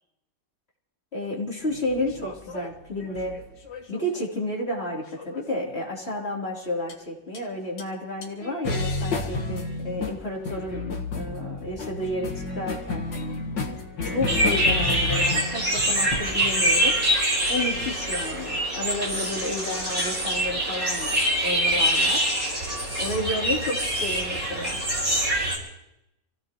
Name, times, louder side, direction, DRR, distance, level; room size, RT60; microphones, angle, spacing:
voice 1, 1.1-3.3 3.9-13.0 14.0-17.0 17.5-22.3 23.0-24.8 25.2-25.4, left 1 dB, 35° left, -3 dB, 3.7 m, -31 dB
sound 1, 1.7-4.2 5.2-5.7 6.9-7.0 7.3-7.4 7.8-7.9 8.2-18.0, left 3 dB, 70° left, 2.2 m, -32 dB
sound 2, 14.3-25.6, right 1 dB, 45° right, 5.3 m, -25 dB
27.5 x 17.0 x 3.0 m, 0.85 s
omnidirectional pair, 2.0 m